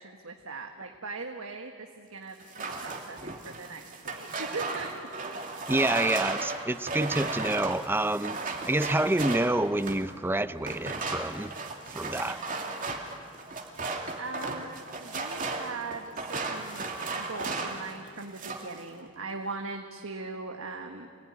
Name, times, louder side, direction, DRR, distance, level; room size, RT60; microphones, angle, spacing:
voice 1, 0.0-4.9 5.2-5.4 14.2-21.1, right 3 dB, 75° right, 3 dB, 1.6 m, -40 dB
sound 1, 2.4-10.1 10.6-17.9 18.2-18.8, right 3 dB, 40° right, 2.7 m, -35 dB
voice 2, 5.7-11.5 11.9-12.4, right 1 dB, 10° right, 13 dB, 0.6 m, -28 dB
28.0 x 20.0 x 9.9 m, 2.2 s
head